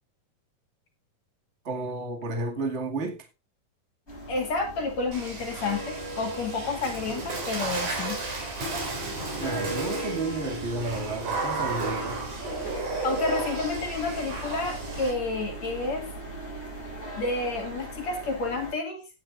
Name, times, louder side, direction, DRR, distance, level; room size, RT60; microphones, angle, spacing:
voice 1, 1.6-3.2 9.4-12.2, right 3 dB, 25° right, 1.9 m, -32 dB
sound 1, 4.1-18.7, right 1 dB, 15° left, 7.2 m, -39 dB
voice 2, 4.3-8.2 13.0-16.1 17.2-19.1, left 3 dB, 50° left, 3.4 m, -30 dB
Water / Splash splatter, 5.1-15.1, right 3 dB, 60° right, 5.4 m, -33 dB
16.0 x 10.0 x 2.6 m
omnidirectional pair, 4.2 m